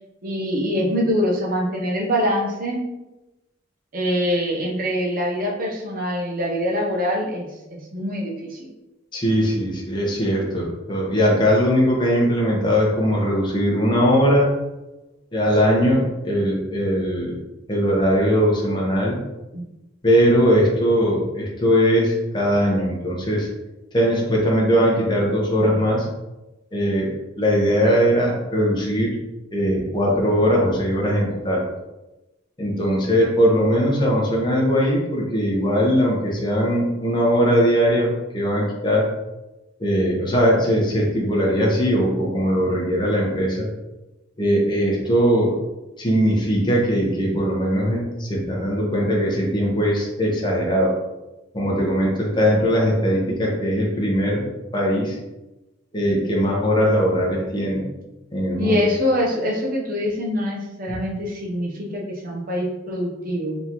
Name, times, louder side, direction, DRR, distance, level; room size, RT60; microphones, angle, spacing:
voice 1, 0.2-2.8 3.9-8.7 19.5-19.6 58.6-63.6, equal, 45° right, -2 dB, 0.8 m, -24 dB
voice 2, 9.1-14.5 15.3-17.4 17.7-19.2 20.0-23.5 23.9-26.1 26.7-29.2 29.5-31.6 32.6-39.1 39.8-43.7 44.4-45.5 46.0-51.0 51.5-54.4 54.7-55.2 55.9-57.8 58.3-58.8, equal, 25° left, -3 dB, 1.0 m, -20 dB
4.1 x 3.7 x 3.0 m, 1.0 s
head